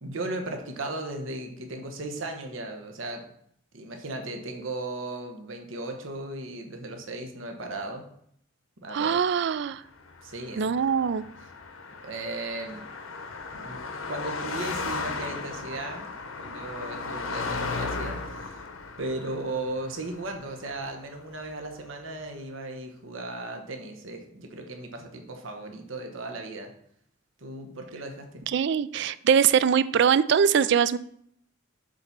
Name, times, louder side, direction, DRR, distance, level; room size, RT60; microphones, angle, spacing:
voice 1, 0.0-3.2 3.7-8.0 8.8-9.2 10.2-10.7 12.0-12.8 13.5-13.8 14.1-16.1 16.4-18.6 19.0-26.7 27.4-28.4, right 2 dB, 75° right, 4 dB, 1.2 m, -36 dB
voice 2, 8.9-9.8 10.6-11.2 28.5-31.0, right 7 dB, 55° right, 16 dB, 0.3 m, -22 dB
Car passing by, 10.0-21.5, left 4 dB, 85° left, 0.9 m, -36 dB
7.8 x 4.2 x 5.9 m, 0.68 s
head